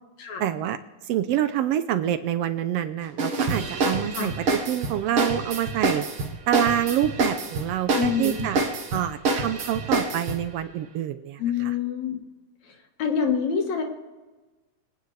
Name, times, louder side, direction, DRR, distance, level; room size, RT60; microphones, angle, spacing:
voice 1, 0.4-0.8 1.0-6.1 6.5-8.6 8.9-11.7, right 11 dB, 80° right, 11 dB, 1.4 m, -27 dB
sound 1, 3.2-10.4, right 3 dB, 55° right, 2.1 m, -27 dB
voice 2, 8.0-8.5 11.4-12.2 13.0-13.8, left 7 dB, 70° left, 2 dB, 2.9 m, -26 dB
24.0 x 9.3 x 3.3 m, 1.2 s
omnidirectional pair, 3.3 m